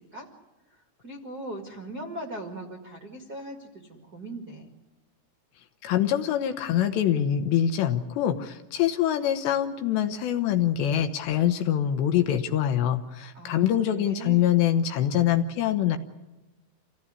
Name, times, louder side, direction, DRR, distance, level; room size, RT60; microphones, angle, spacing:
voice 1, 1.0-4.7 13.3-14.6, right 1 dB, 45° right, 3 dB, 1.2 m, -39 dB
voice 2, 5.8-16.0, left 10 dB, 75° left, 8 dB, 2.8 m, -24 dB
27.0 x 16.0 x 9.7 m, 1.1 s
omnidirectional pair, 5.6 m